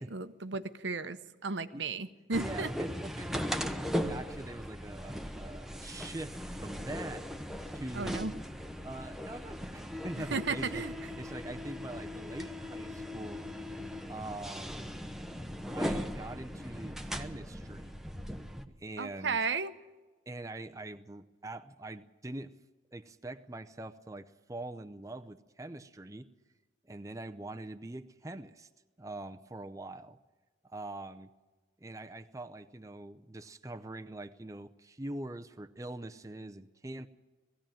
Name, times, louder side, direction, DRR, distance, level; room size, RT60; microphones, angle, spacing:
voice 1, 0.0-2.7 7.9-8.3 10.3-10.9 19.0-19.8, right 4 dB, 75° right, 11 dB, 0.9 m, -34 dB
sound 1, 2.3-18.7, equal, ahead, 0.9 m, -39 dB
voice 2, 2.3-3.5 3.8-7.2 7.7-8.4 8.8-10.8 11.2-13.5 14.1-14.8 15.7-18.0 18.8-19.4 20.3-22.5 22.9-26.3 26.9-28.7 29.0-30.2 30.6-31.3 31.8-37.1, right 2 dB, 15° right, 7 dB, 0.6 m, -43 dB
19.5 x 15.5 x 8.9 m, 1.3 s
head